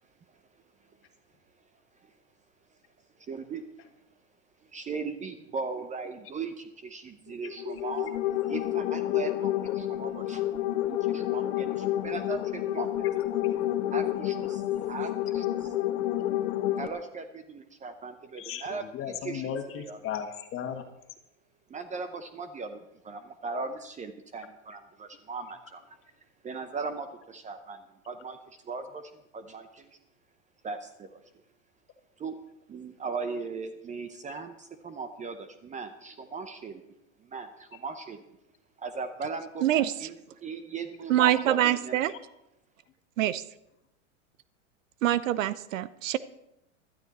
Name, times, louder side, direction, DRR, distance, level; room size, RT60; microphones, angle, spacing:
voice 1, 3.3-3.6 4.7-8.2 8.5-10.4 10.9-13.1 13.9-15.4 16.8-18.8 19.2-19.5 19.8-20.0 21.7-22.8 23.0-26.0 26.4-30.0 30.6-31.2 32.2-32.4 32.7-36.8 37.2-38.2 38.8-40.2 40.4-42.0, right 4 dB, 20° right, 10 dB, 0.7 m, -38 dB
sound 1, 7.4-16.9, left 13 dB, 65° left, 1.1 m, -29 dB
voice 2, 18.4-20.8 42.1-42.2, left 8 dB, 35° left, 6 dB, 1.8 m, -36 dB
voice 3, 39.6-39.9 41.1-42.1 43.2-43.4 45.0-46.2, right 13 dB, 80° right, 17 dB, 0.7 m, -25 dB
15.5 x 12.0 x 4.2 m, 0.86 s
hypercardioid pair, 115°, 39 cm